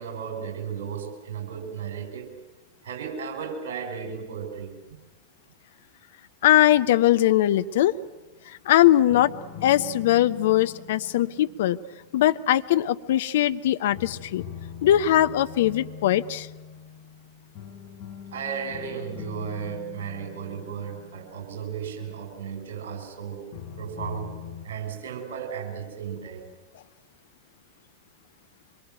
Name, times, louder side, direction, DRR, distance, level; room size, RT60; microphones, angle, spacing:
voice 1, 0.0-2.3 2.8-4.8 18.3-23.5 23.8-24.3 24.6-26.4, right 7 dB, 55° right, 4 dB, 5.7 m, -35 dB
voice 2, 6.4-8.0 8.7-9.3 9.6-11.8 12.1-14.4 14.8-16.5, left 13 dB, 55° left, 11 dB, 0.8 m, -20 dB
sound 1, 6.5-7.7 9.1-13.1 13.9-22.7 23.5-24.7, left 8 dB, 40° left, 5.3 m, -43 dB
25.5 x 23.0 x 9.3 m, 1.1 s
figure-of-eight pair, 90°, 0 cm